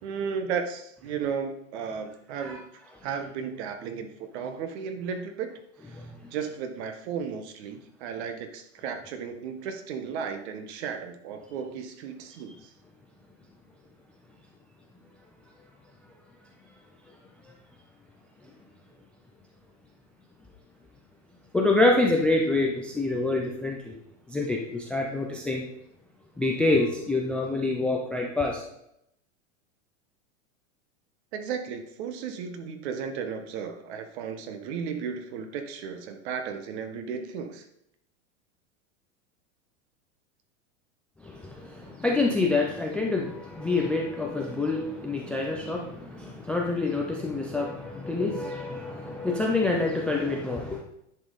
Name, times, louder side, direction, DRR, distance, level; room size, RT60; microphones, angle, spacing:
voice 1, 0.0-2.7 3.0-5.5 5.8-6.0 6.3-12.7 31.3-37.6, right 6 dB, 55° right, 8 dB, 1.3 m, -34 dB
voice 2, 21.5-23.9 24.3-25.6 26.4-28.6 41.2-50.8, left 2 dB, 5° left, 0 dB, 0.3 m, -27 dB
10.0 x 5.4 x 4.0 m, 0.78 s
supercardioid pair, 140°, 39 cm